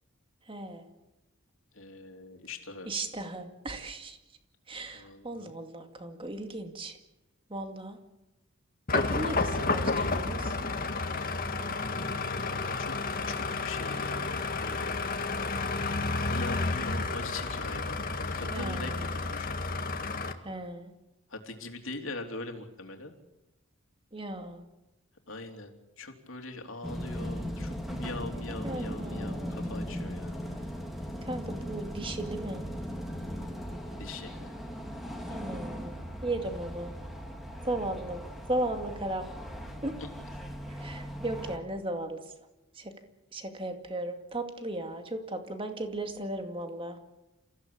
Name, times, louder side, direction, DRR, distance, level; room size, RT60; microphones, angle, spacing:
voice 1, 0.5-0.9 2.9-4.2 4.7-7.0 7.5-8.0 8.9-10.6 18.4-19.2 20.4-20.9 24.1-24.6 28.6-29.7 31.2-32.6 35.3-36.9 37.6-38.2 38.5-39.3 39.8-40.0 40.7-42.2 42.7-42.9 43.3-47.0, right 1 dB, 25° right, 5 dB, 2.3 m, -36 dB
voice 2, 1.7-2.9 4.9-5.5 12.5-12.9 13.3-15.0 16.2-19.6 21.3-23.1 25.3-25.7 26.0-30.4 34.0-34.6, left 2 dB, 65° left, 4 dB, 3.3 m, -42 dB
sound 1, 8.9-20.3, left 3 dB, 40° left, 1.8 m, -31 dB
sound 2, 26.8-41.6, equal, ahead, 2.9 m, -38 dB
29.0 x 16.0 x 8.6 m, 1.0 s
head